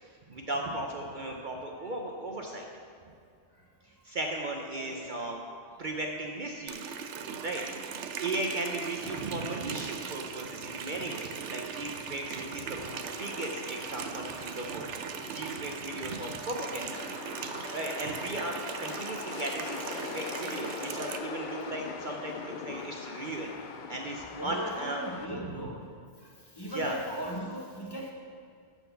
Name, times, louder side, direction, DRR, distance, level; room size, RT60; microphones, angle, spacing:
voice 1, 0.3-2.7 4.0-5.4 5.8-6.9 7.4-7.6 8.2-12.9 13.2-14.9 15.2-17.1 17.7-18.5 18.8-23.5 23.9-25.0 25.4-25.5 26.7-27.0, right 2 dB, 50° right, 1 dB, 0.8 m, -36 dB
voice 2, 4.7-5.2 10.0-10.2 11.0-11.2 15.7-15.8 18.1-18.2 22.7-22.8 24.3-25.8 26.5-28.1, equal, 20° left, -3 dB, 1.3 m, -39 dB
Water tap faucet, 6.7-21.2, right 7 dB, 80° right, 0.9 m, -39 dB
sound 1, 12.8-25.3, left 6 dB, 55° left, 0.6 m, -42 dB
12.5 x 4.5 x 6.8 m, 2.2 s
omnidirectional pair, 1.2 m